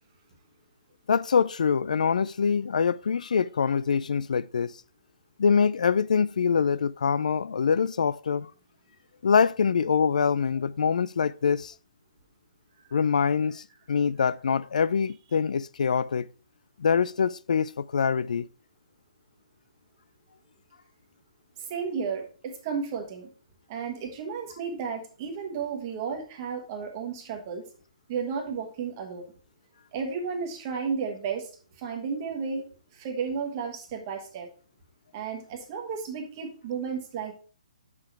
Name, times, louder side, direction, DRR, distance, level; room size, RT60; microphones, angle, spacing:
voice 1, 1.1-4.8 5.4-8.5 9.2-11.7 12.9-16.3 16.8-18.5, left 6 dB, 70° left, 0.3 m, -24 dB
voice 2, 21.7-23.3 23.7-27.7 28.1-29.3 29.9-31.5 31.8-32.7 32.9-34.5 35.1-37.3, right 6 dB, 20° right, 1.3 m, -33 dB
6.7 x 6.0 x 4.6 m
hypercardioid pair, 180°, 4 cm